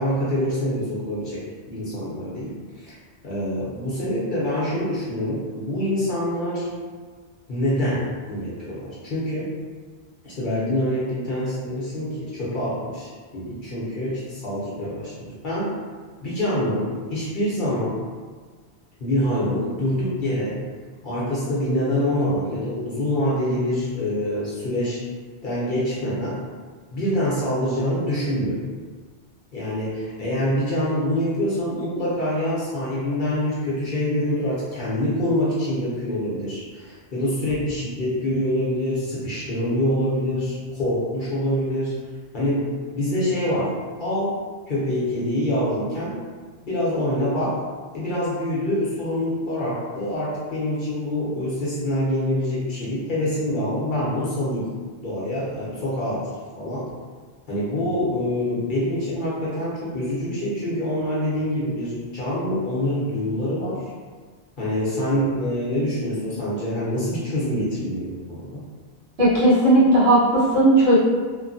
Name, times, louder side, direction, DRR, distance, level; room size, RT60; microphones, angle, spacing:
voice 1, 0.0-1.4 1.7-2.9 3.2-6.7 7.5-9.5 10.2-15.8 16.2-18.0 19.0-20.6 21.0-25.0 25.4-26.4 26.9-28.7 29.5-41.9 42.3-44.4 44.7-46.2 46.6-47.6 47.9-54.7 55.0-56.3 56.6-56.8 57.5-63.8 64.6-68.6, left 1 dB, 50° left, -8 dB, 0.8 m, -25 dB
voice 2, 69.2-71.0, right 1 dB, 65° right, -11 dB, 1.4 m, -16 dB
3.0 x 2.1 x 2.6 m, 1.5 s
omnidirectional pair, 1.1 m